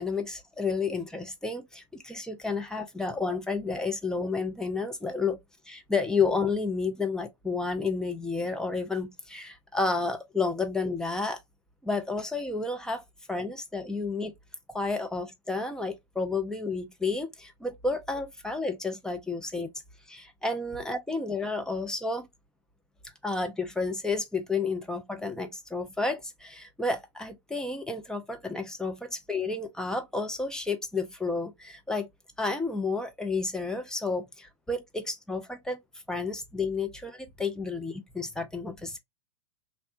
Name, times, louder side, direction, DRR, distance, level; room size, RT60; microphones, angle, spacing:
voice 1, 0.0-5.4 5.7-11.4 11.8-13.0 13.3-14.3 14.7-19.7 20.1-22.3 23.2-32.1 32.4-35.8 36.1-39.0, left 4 dB, 5° left, 0.4 m, -31 dB
2.7 x 2.1 x 2.5 m
figure-of-eight pair, 100°, 16 cm